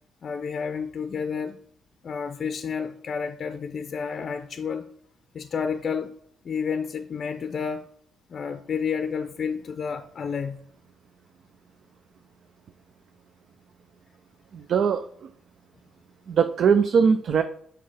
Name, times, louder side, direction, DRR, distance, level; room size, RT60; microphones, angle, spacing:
voice 1, 0.2-1.6 2.0-4.9 5.3-6.1 6.4-7.9 8.3-10.6, left 6 dB, 50° left, 0.5 m, -30 dB
voice 2, 14.5-15.3 16.3-17.4, right 6 dB, 60° right, 0.4 m, -21 dB
7.5 x 4.4 x 3.4 m
cardioid pair, 90°, 0 cm